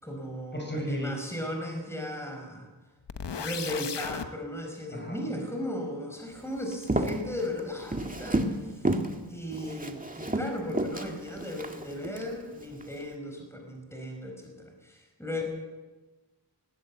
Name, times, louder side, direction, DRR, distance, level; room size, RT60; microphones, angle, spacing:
voice 1, 0.0-2.7 3.3-9.0 9.3-15.4, left 1 dB, 5° left, 2 dB, 4.8 m, -36 dB
voice 2, 0.5-1.1 4.9-5.2, equal, 25° left, 1 dB, 5.1 m, -33 dB
sound 1, 3.1-4.3, left 7 dB, 85° left, 1.1 m, -35 dB
Walk footsteps, 6.7-8.6 8.8-9.1 9.5-12.2 12.7-13.0, right 1 dB, 20° right, 1.9 m, -30 dB
19.0 x 16.5 x 8.4 m, 1.2 s
wide cardioid pair, 80°, 41 cm